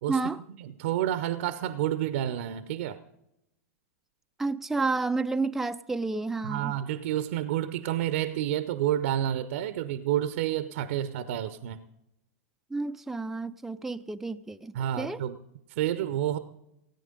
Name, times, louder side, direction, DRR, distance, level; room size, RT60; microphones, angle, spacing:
voice 1, 0.1-0.4 4.4-6.7 12.7-15.2, right 3 dB, 5° right, 0.4 m, -30 dB
voice 2, 0.6-3.0 6.4-11.8 14.7-15.4 15.8-16.4, right 11 dB, 60° right, 0.7 m, -29 dB
16.5 x 9.0 x 5.2 m
hypercardioid pair, 105°, 8 cm